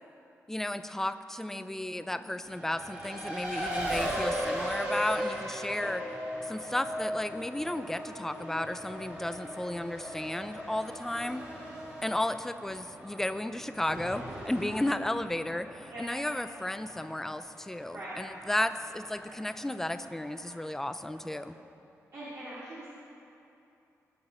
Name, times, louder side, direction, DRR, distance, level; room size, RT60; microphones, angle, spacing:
voice 1, 0.5-6.0 6.4-11.4 12.0-21.6, left 1 dB, 5° left, 11 dB, 0.4 m, -33 dB
voice 2, 1.5-2.2 5.8-5.9 11.2-11.4 15.9-16.0 17.9-18.1 22.1-22.9, right 1 dB, 60° right, -10 dB, 2.7 m, -44 dB
Race car auto racing, 2.4-21.6, equal, 25° right, 2.8 m, -39 dB
20.0 x 6.9 x 5.4 m, 2.8 s
wide cardioid pair, 155°, 6 cm